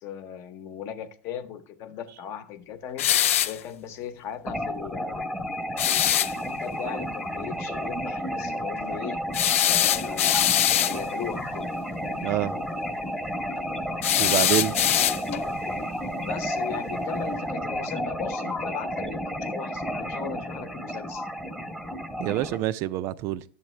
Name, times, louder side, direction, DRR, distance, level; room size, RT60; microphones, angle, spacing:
voice 1, 0.0-3.1 3.4-5.2 5.8-9.2 9.7-10.3 10.7-11.7 14.5-14.6 16.2-21.3, left 8 dB, 40° left, 0.9 m, -38 dB
sound 1, 3.0-3.6 5.8-6.3 9.3-11.0 14.0-15.5, left 11 dB, 90° left, 0.4 m, -22 dB
sound 2, 4.5-22.6, equal, 5° left, 1.0 m, -32 dB
voice 2, 12.2-12.6 14.2-14.7 22.2-23.4, right 14 dB, 40° right, 0.4 m, -26 dB
11.0 x 7.4 x 3.2 m
supercardioid pair, 140°, 7 cm